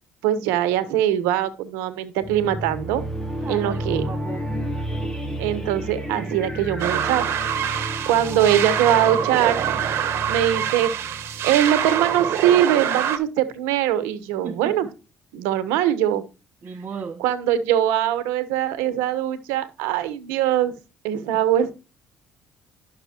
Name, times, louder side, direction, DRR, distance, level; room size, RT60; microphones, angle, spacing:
voice 1, 0.2-3.0 3.5-4.1 5.4-7.3 8.1-9.8 10.3-10.9 11.4-14.9 15.3-16.2 17.2-20.8 21.0-21.7, right 11 dB, 85° right, 1.1 m, -22 dB
sound 1, 2.2-12.4, equal, 15° left, 2.9 m, -32 dB
voice 2, 3.4-4.6 14.4-14.9 16.6-17.2, right 5 dB, 40° right, 1.2 m, -35 dB
sound 2, 6.8-13.2, right 9 dB, 65° right, 1.3 m, -25 dB
11.5 x 6.6 x 2.9 m
supercardioid pair, 70°, 5 cm